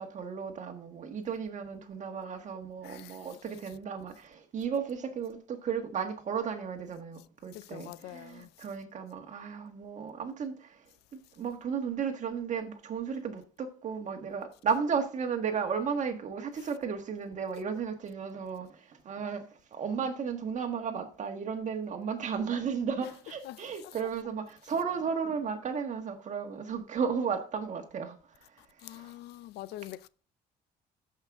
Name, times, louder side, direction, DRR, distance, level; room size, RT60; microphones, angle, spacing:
voice 1, 0.0-10.8 11.1-19.5 19.7-28.2 28.5-29.1, right 6 dB, 45° right, 1.5 m, -34 dB
voice 2, 2.8-3.3 7.5-8.5 16.6-16.7 23.4-24.0 28.6-30.1, left 14 dB, 75° left, 0.4 m, -45 dB
13.5 x 5.6 x 3.5 m
cardioid pair, 110°, 17 cm